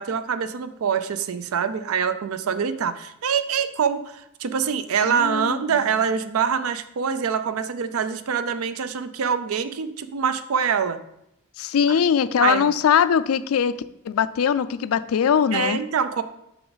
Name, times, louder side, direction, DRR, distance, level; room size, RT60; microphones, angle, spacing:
voice 1, 0.0-11.0 12.4-12.6 15.5-16.2, right 7 dB, 75° right, 12 dB, 0.5 m, -25 dB
voice 2, 5.0-5.6 11.6-13.7 14.1-15.8, left 7 dB, 80° left, 15 dB, 0.4 m, -21 dB
6.9 x 5.8 x 4.0 m, 0.80 s
head